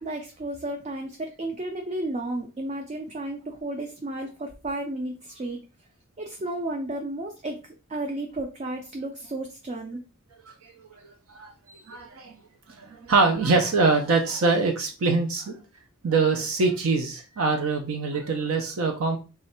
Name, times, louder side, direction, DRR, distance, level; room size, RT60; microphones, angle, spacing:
voice 1, 0.0-5.6 6.2-7.6 7.9-10.0, right 1 dB, 30° right, 4 dB, 0.4 m, -33 dB
voice 2, 11.9-12.3 12.8-15.6 16.0-19.2, right 3 dB, 75° right, 3 dB, 0.6 m, -24 dB
3.1 x 2.5 x 4.3 m, 0.33 s
head